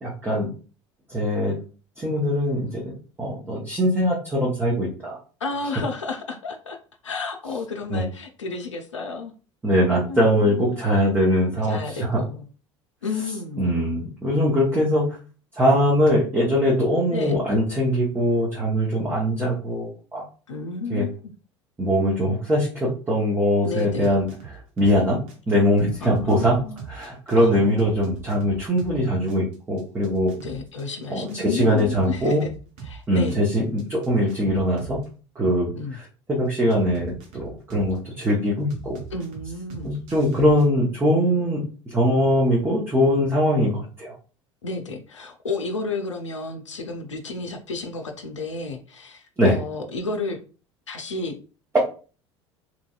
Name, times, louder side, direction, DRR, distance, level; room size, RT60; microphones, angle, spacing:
voice 1, 0.0-0.5 1.1-1.6 2.0-5.2 7.9-8.0 9.6-12.2 13.6-15.2 15.6-20.2 20.9-21.1 21.8-24.3 24.8-25.2 25.5-26.6 26.9-30.3 31.1-32.4 33.1-35.0 35.4-36.0 36.3-39.0 39.8-44.1 49.4-49.5 51.7-51.8, equal, 15° right, -4 dB, 0.9 m, -22 dB
voice 2, 5.4-6.8 7.0-9.3 10.1-10.8 11.7-12.5 13.0-13.7 17.1-17.3 20.5-21.1 23.6-24.2 26.0-26.9 27.4-27.9 30.4-32.5 32.8-33.4 35.7-36.0 39.1-39.9 44.6-50.4 50.9-51.4, left 3 dB, 80° left, 4 dB, 0.4 m, -32 dB
sound 1, 23.8-25.0 25.3-29.0 29.3-33.0 33.3-35.0 36.7-38.3 38.7-40.6, right 6 dB, 50° right, 0.9 m, -41 dB
3.0 x 2.6 x 2.4 m, 0.37 s
figure-of-eight pair, 70°, 15 cm